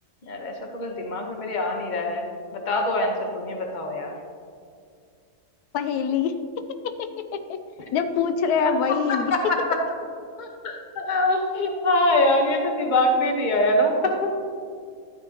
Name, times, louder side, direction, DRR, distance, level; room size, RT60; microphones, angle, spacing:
voice 1, 0.3-2.3 2.5-4.1 8.6-8.7 9.1-9.8 10.4-14.3, left 1 dB, 35° left, 2 dB, 1.1 m, -24 dB
voice 2, 5.7-6.4 6.8-7.1 7.5-7.6 7.9-9.3, left 7 dB, 85° left, 8 dB, 1.1 m, -24 dB
12.5 x 9.4 x 2.9 m, 2.2 s
omnidirectional pair, 1.6 m